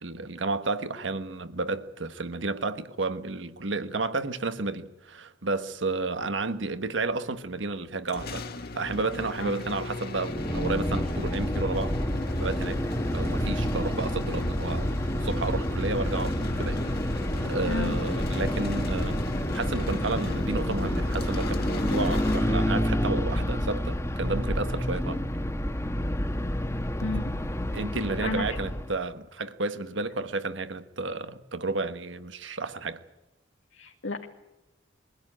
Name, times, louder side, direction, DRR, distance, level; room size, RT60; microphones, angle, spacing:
voice 1, 0.0-8.4 8.7-11.9 12.4-12.8 13.1-14.9 15.2-19.2 19.5-25.2 27.7-33.0, right 3 dB, 75° right, 1.3 m, -32 dB
sound 1, 8.1-23.0, left 2 dB, 55° left, 1.7 m, -37 dB
sound 2, 10.2-29.0, equal, 15° left, 1.2 m, -29 dB
voice 2, 17.7-18.0 27.0-27.3 28.2-28.6 33.7-34.3, left 2 dB, 90° left, 1.9 m, -32 dB
23.0 x 16.0 x 9.9 m
head